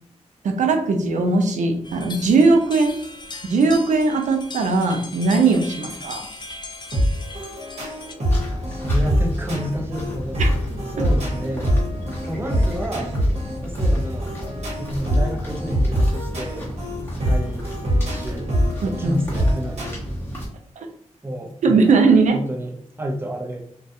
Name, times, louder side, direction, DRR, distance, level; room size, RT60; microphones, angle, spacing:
voice 1, 0.4-3.0 3.4-6.3 10.4-10.5 18.8-19.2 21.6-22.4, right 3 dB, 80° right, 5 dB, 0.4 m, -19 dB
sound 1, 1.8-8.1, left 3 dB, 35° left, 0.3 m, -38 dB
sound 2, 6.9-19.9, equal, 60° right, 1.1 m, -24 dB
sound 3, 8.3-20.5, equal, 15° left, 1.0 m, -32 dB
voice 2, 8.7-10.6 10.9-11.7 12.3-13.1 13.6-14.3 14.8-16.7 17.0-17.6 18.0-18.5 19.0-20.0 21.2-21.8 22.3-23.7, equal, 20° right, 1 dB, 0.6 m, -30 dB
2.3 x 2.2 x 2.6 m, 0.64 s
cardioid pair, 70°, 12 cm